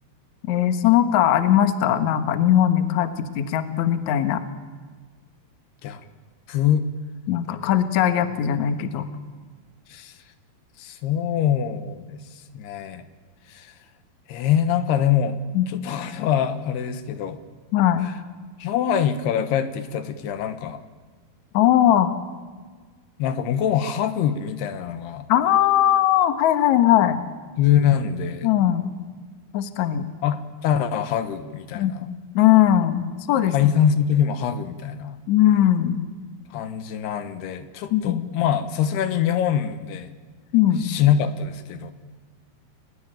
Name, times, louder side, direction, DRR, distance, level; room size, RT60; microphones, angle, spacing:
voice 1, 0.5-4.4 7.3-9.1 15.5-15.7 17.7-18.1 21.5-22.1 25.3-27.2 28.4-28.9 29.5-30.1 31.7-33.5 35.3-36.0 37.9-38.2 40.5-40.8, left 11 dB, 60° left, 9 dB, 2.2 m, -19 dB
voice 2, 6.5-6.8 9.9-10.2 10.8-13.1 13.5-13.7 14.3-17.4 18.0-18.2 18.6-20.8 23.2-25.3 27.6-28.5 30.2-32.1 33.5-35.2 36.5-40.1 40.8-41.9, left 9 dB, 75° left, 10 dB, 3.2 m, -24 dB
30.0 x 18.5 x 9.0 m, 1.5 s
omnidirectional pair, 4.7 m